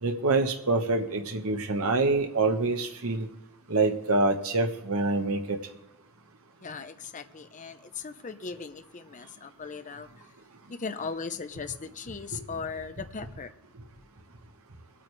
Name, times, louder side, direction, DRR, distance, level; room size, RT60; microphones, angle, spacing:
voice 1, 0.0-3.3 3.7-5.6 12.3-12.4, right 3 dB, 70° right, 4 dB, 1.1 m, -26 dB
voice 2, 6.6-10.1 10.7-13.5, left 5 dB, 35° left, 9 dB, 0.6 m, -38 dB
23.0 x 8.8 x 3.3 m, 0.87 s
head